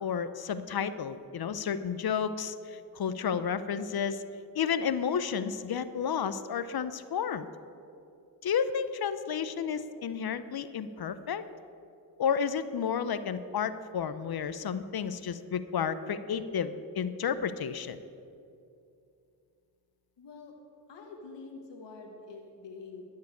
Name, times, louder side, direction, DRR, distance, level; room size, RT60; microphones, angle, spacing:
voice 1, 0.0-4.2 4.5-7.5 8.4-11.4 12.2-18.0, left 7 dB, 60° left, 13 dB, 0.6 m, -31 dB
voice 2, 20.2-20.5 20.9-23.0, left 4 dB, 90° left, 3 dB, 1.3 m, -46 dB
13.5 x 4.7 x 8.4 m, 2.6 s
cardioid pair, 50°, 42 cm